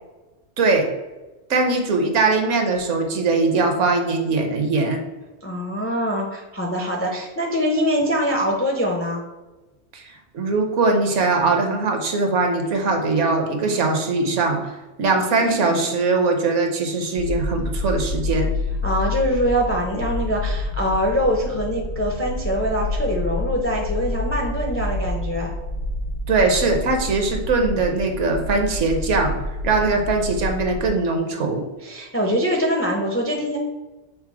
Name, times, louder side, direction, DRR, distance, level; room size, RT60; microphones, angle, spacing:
voice 1, 0.6-0.9 1.5-5.1 9.9-10.0 10.3-14.7 15.0-18.5 26.3-29.3 29.6-31.7, right 3 dB, 70° right, 4 dB, 1.1 m, -21 dB
voice 2, 5.4-9.2 15.4-15.8 18.8-25.5 31.3-31.5 31.8-33.6, equal, 25° left, 0 dB, 0.3 m, -23 dB
sound 1, 17.2-30.9, left 1 dB, 65° left, 0.8 m, -28 dB
5.6 x 2.0 x 4.6 m, 1.1 s
omnidirectional pair, 1.3 m